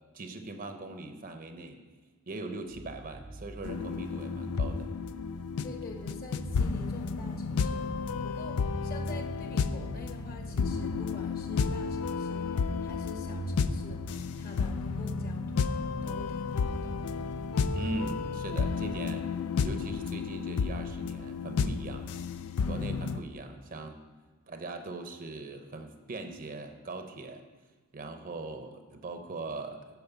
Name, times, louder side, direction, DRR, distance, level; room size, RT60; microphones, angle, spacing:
voice 1, 0.1-1.8 2.3-4.9 17.7-19.3 19.6-22.1 22.7-24.0 24.5-27.4 27.9-29.9, right 2 dB, 40° right, 7 dB, 0.7 m, -40 dB
sound 1, 2.7-19.5, right 1 dB, 15° right, 0.4 m, -43 dB
sound 2, 3.6-23.2, left 5 dB, 80° left, 0.4 m, -32 dB
voice 2, 5.6-7.8 8.2-12.4 12.8-14.0 14.3-15.7 16.0-17.0 22.6-22.8, left 2 dB, 45° left, 2 dB, 1.3 m, -47 dB
11.0 x 4.3 x 6.9 m, 1.3 s
head